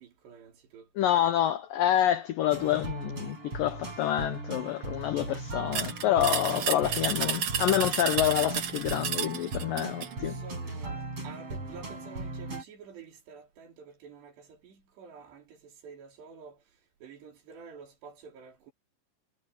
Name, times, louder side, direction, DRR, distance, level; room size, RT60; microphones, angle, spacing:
voice 1, 0.0-1.1 6.5-7.1 10.2-16.6 17.0-18.7, right 6 dB, 70° right, 6.0 m, -49 dB
voice 2, 1.0-10.4, left 12 dB, 90° left, 1.9 m, -27 dB
sound 1, 2.5-12.6, right 2 dB, 30° right, 9.0 m, -38 dB
sound 2, 5.7-10.1, right 8 dB, 50° right, 2.1 m, -32 dB
omnidirectional pair, 5.1 m